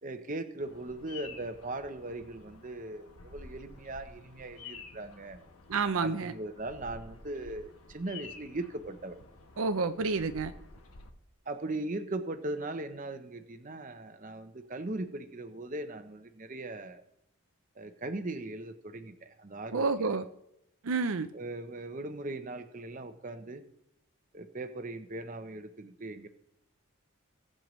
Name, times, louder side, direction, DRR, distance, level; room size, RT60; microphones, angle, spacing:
voice 1, 0.0-5.4 6.0-9.2 11.5-17.0 17.8-20.1 21.3-23.6 24.3-26.3, right 2 dB, 35° right, 8 dB, 0.8 m, -39 dB
Bird vocalization bird call bird song, 0.6-11.1, left 4 dB, 85° left, 1.2 m, -51 dB
voice 2, 5.7-6.3 9.6-10.5 19.7-20.3 20.8-21.3, right 4 dB, 75° right, 9 dB, 0.6 m, -29 dB
20.0 x 7.6 x 3.2 m, 0.80 s
head